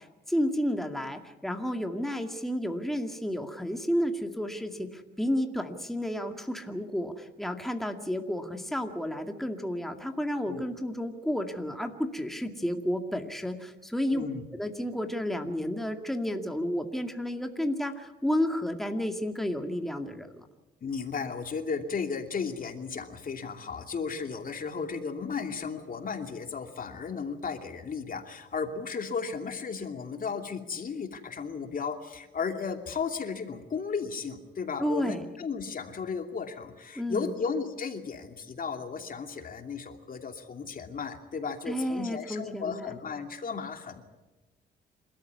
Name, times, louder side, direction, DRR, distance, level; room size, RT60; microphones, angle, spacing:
voice 1, 0.0-14.3 14.5-20.5 34.8-35.2 37.0-37.3 41.7-43.0, equal, ahead, 4 dB, 2.2 m, -31 dB
voice 2, 14.1-14.4 20.8-44.0, left 5 dB, 45° left, 5 dB, 2.8 m, -35 dB
27.5 x 13.5 x 9.6 m, 1.2 s
cardioid pair, 90°, 20 cm